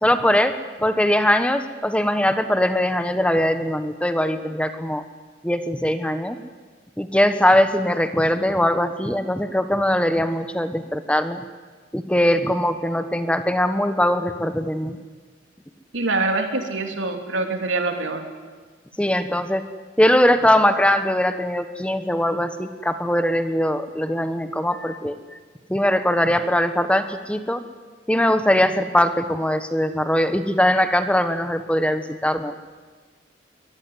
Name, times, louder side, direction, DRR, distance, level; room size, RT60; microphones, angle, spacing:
voice 1, 0.0-5.0 5.4-6.4 7.0-11.4 11.9-15.0 19.0-19.6 20.0-25.2 25.7-27.6 28.1-32.5, left 1 dB, 5° left, 9 dB, 1.1 m, -21 dB
voice 2, 15.9-18.2, right 3 dB, 85° right, 4 dB, 3.2 m, -24 dB
23.5 x 19.5 x 9.6 m, 1.5 s
head